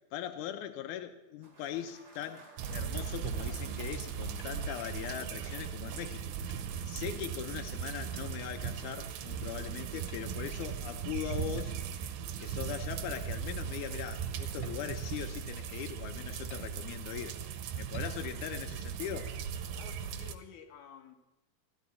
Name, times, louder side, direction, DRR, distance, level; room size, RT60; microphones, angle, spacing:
voice 1, 0.1-2.4 2.7-6.3 6.8-11.8 12.4-17.4 17.8-19.4, left 10 dB, 90° left, 8 dB, 1.8 m, -40 dB
sound 1, 1.4-6.4, right 2 dB, 35° right, 2.7 m, -55 dB
sound 2, 2.6-20.4, right 7 dB, 85° right, 2.7 m, -38 dB
sound 3, 4.4-5.4 6.0-7.8 8.1-9.3 10.1-10.7 11.6-12.1 12.5-12.7 13.2-13.3 13.7-13.9 14.5-15.7 16.5-17.1 17.9-18.5 18.9-19.7, left 3 dB, 40° left, 1.8 m, -59 dB
voice 2, 19.7-21.2, left 7 dB, 65° left, 3 dB, 2.4 m, -52 dB
14.5 x 14.0 x 4.3 m, 0.99 s
omnidirectional pair, 4.4 m